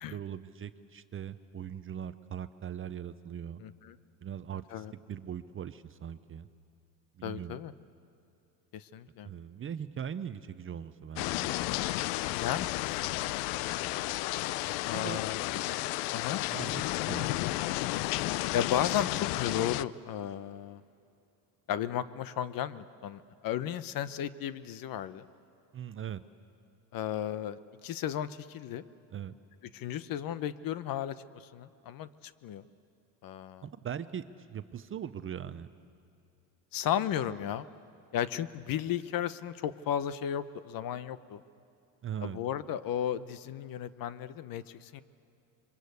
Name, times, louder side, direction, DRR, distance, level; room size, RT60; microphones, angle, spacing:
voice 1, 0.1-3.6 4.2-6.5 7.2-7.6 9.2-11.5 14.9-15.2 16.5-16.8 17.1-17.4 25.7-26.2 29.1-29.4 33.6-34.2 34.5-35.7 42.0-42.4, right 9 dB, 25° right, 12 dB, 0.8 m, -40 dB
voice 2, 3.6-4.0 4.7-4.9 7.2-7.7 8.7-9.3 12.3-13.3 14.9-15.6 16.1-16.4 18.5-20.8 21.7-25.2 26.9-28.8 29.7-31.2 31.5-32.6 33.2-33.7 36.7-37.7 38.1-41.4 42.2-45.0, left 10 dB, 45° left, 15 dB, 0.9 m, -34 dB
sound 1, 11.2-19.8, left 17 dB, 70° left, 0.7 m, -32 dB
26.5 x 23.5 x 8.2 m, 2.7 s
supercardioid pair, 105°, 49 cm